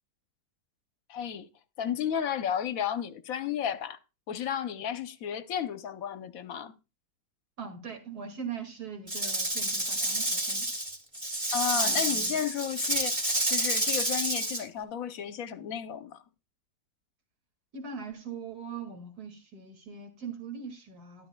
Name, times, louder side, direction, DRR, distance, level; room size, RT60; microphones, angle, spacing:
voice 1, 1.1-1.5 1.8-4.0 4.3-6.8 11.5-16.2, left 9 dB, 65° left, 1.0 m, -33 dB
voice 2, 7.6-10.7 11.7-12.4 17.7-21.3, right 5 dB, 60° right, 2.4 m, -41 dB
Rattle / Rattle (instrument), 9.1-14.6, right 1 dB, 20° right, 2.3 m, -29 dB
13.0 x 11.5 x 2.2 m
omnidirectional pair, 1.8 m